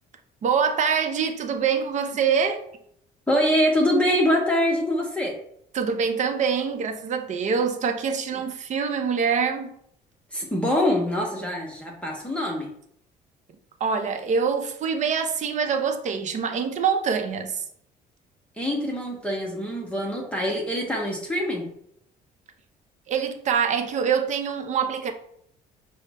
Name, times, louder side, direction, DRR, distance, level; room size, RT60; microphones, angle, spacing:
voice 1, 0.4-2.6 5.7-9.7 13.8-17.6 23.1-25.1, right 6 dB, 45° right, 0.6 m, -25 dB
voice 2, 3.3-5.4 10.3-12.7 18.6-21.7, equal, 5° left, 0.7 m, -24 dB
5.3 x 2.1 x 3.4 m
cardioid pair, 110°, 17 cm